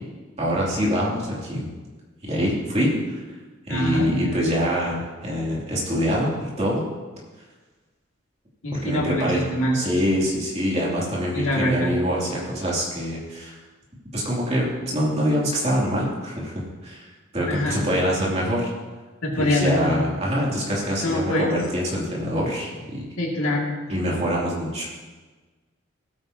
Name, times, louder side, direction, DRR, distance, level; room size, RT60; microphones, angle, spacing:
voice 1, 0.4-1.7 2.2-3.2 3.7-6.8 8.7-9.5 9.7-13.5 14.1-17.1 17.3-18.7 19.4-23.0 23.9-24.9, equal, 30° right, -5 dB, 2.7 m, -25 dB
voice 2, 3.7-4.3 8.6-9.7 11.3-11.9 17.5-17.8 19.2-20.0 21.0-21.5 23.2-23.7, left 1 dB, 90° left, -2 dB, 2.3 m, -24 dB
16.5 x 9.0 x 2.8 m, 1.3 s
head